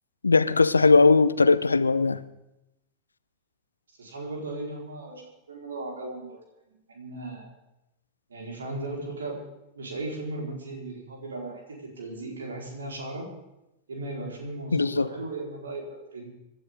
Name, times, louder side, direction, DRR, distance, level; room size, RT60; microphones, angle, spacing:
voice 1, 0.2-2.2 14.7-15.1, left 4 dB, 80° left, 0.7 m, -19 dB
voice 2, 4.0-5.2 5.5-6.4 6.9-7.5 8.3-9.4 9.7-13.3 13.9-16.3, right 2 dB, 70° right, 4.7 m, -36 dB
26.5 x 12.5 x 3.8 m
figure-of-eight pair, 90°, 0 cm